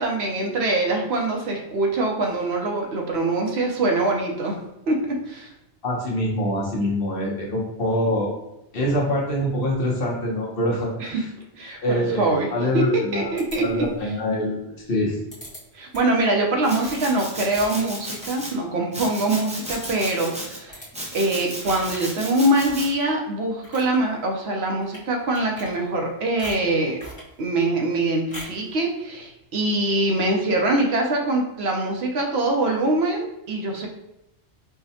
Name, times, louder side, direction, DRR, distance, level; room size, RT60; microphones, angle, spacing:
voice 1, 0.0-5.5 11.0-11.2 11.5-13.9 15.7-20.9 21.1-27.0 27.4-33.9, right 2 dB, 70° right, 1 dB, 0.9 m, -24 dB
voice 2, 5.8-8.3 8.7-11.3 11.8-15.2, left 1 dB, 55° left, -3 dB, 1.0 m, -25 dB
sound 1, 13.4-14.1 15.3-15.6 15.9-16.2 16.7-19.1 19.4-19.5 19.7-20.1 20.7-20.9 21.6-22.1 22.6-23.1 23.5-24.0 24.8-25.1 25.3-26.1 26.4-27.3 28.3-28.7, equal, 25° left, 1.2 m, -41 dB
Domestic sounds home sounds, 16.6-18.5 18.9-20.6 20.9-22.9, equal, 10° right, 0.4 m, -34 dB
4.7 x 2.2 x 2.7 m, 0.90 s
omnidirectional pair, 1.2 m